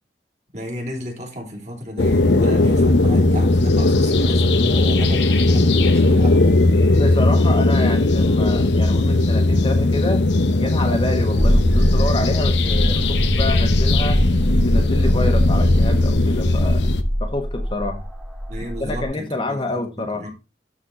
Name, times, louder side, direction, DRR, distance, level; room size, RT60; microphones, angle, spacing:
voice 1, 0.5-6.4 18.5-20.3, equal, 40° right, 3.2 m, -33 dB
sound 1, 2.0-17.0, left 2 dB, 80° left, 0.9 m, -18 dB
voice 2, 6.9-10.2 10.6-14.2 14.5-16.8 17.2-18.0 18.8-20.2, left 2 dB, 30° left, 1.2 m, -27 dB
sound 2, 11.4-19.0, equal, ahead, 1.8 m, -22 dB
12.5 x 4.2 x 4.2 m
head